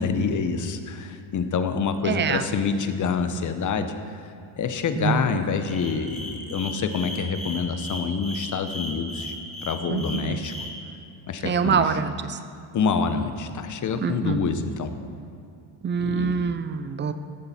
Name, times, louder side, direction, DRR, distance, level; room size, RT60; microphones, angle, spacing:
voice 1, 0.0-3.9 4.6-9.3 9.6-10.5 11.3-12.0 12.7-14.9 16.0-16.4, left 5 dB, 40° left, 9 dB, 0.8 m, -27 dB
voice 2, 2.0-2.4 5.0-5.3 9.9-10.5 11.4-12.4 14.0-14.4 15.8-17.1, right 6 dB, 25° right, 11 dB, 0.4 m, -25 dB
sound 1, 5.7-10.7, left 1 dB, ahead, 2.7 m, -36 dB
14.0 x 7.7 x 4.2 m, 2.5 s
cardioid pair, 120°, 49 cm